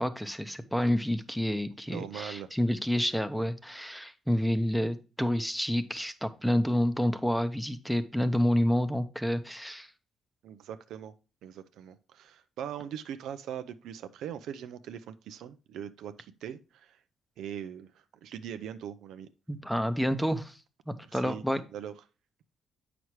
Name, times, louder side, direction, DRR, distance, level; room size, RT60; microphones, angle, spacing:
voice 1, 0.0-9.9 19.5-20.6 20.9-21.6, equal, ahead, 0.7 m, -29 dB
voice 2, 1.9-2.5 10.4-11.1 11.4-17.0 17.4-17.9 18.2-19.3 21.0-21.4 21.7-21.9, right 9 dB, 80° right, 0.5 m, -41 dB
8.0 x 5.9 x 3.1 m
cardioid pair, 90°, 0 cm